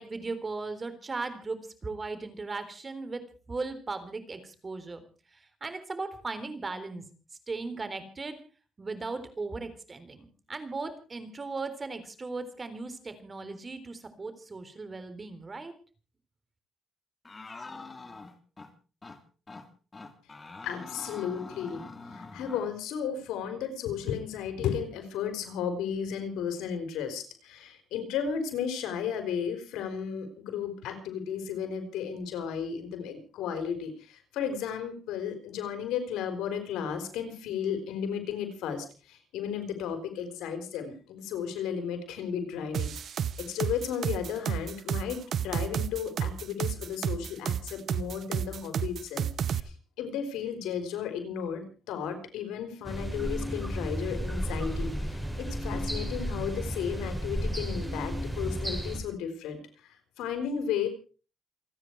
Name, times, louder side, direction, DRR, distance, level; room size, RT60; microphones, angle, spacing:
voice 1, 0.0-5.0 5.3-7.1 7.5-8.4 8.8-15.7, right 3 dB, 30° right, 10 dB, 3.8 m, -37 dB
sound 1, 17.2-18.7 19.0-19.2 19.5-19.7 19.9-22.7, left 3 dB, 30° left, 2.9 m, -44 dB
voice 2, 20.6-21.8 22.1-60.9, left 7 dB, 90° left, 8 dB, 4.1 m, -34 dB
sound 2, 42.7-49.6, right 8 dB, 60° right, 1.0 m, -31 dB
sound 3, 52.8-59.0, equal, 5° right, 6.7 m, -33 dB
28.5 x 9.7 x 4.7 m, 0.38 s
cardioid pair, 90°, 0 cm